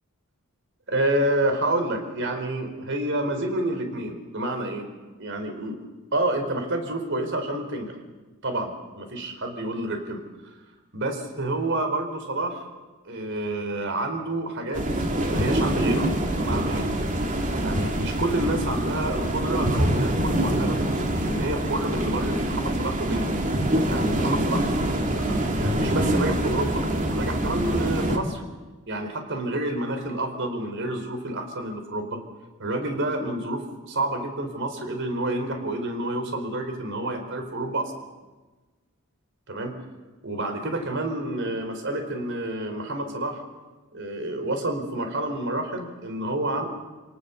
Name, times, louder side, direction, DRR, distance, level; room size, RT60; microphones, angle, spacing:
voice 1, 0.9-4.8 5.2-5.8 6.1-8.0 8.4-10.2 10.9-12.7 13.1-14.9 15.2-16.9 17.6-20.8 21.2-23.3 23.8-24.7 25.1-28.4 28.9-32.2 32.6-37.8 39.5-39.8 40.2-43.4 43.9-46.6, right 1 dB, 60° right, 6 dB, 4.2 m, -29 dB
sound 1, 14.7-28.2, right 1 dB, 40° right, 2.5 m, -25 dB
28.5 x 18.5 x 7.1 m, 1.2 s
head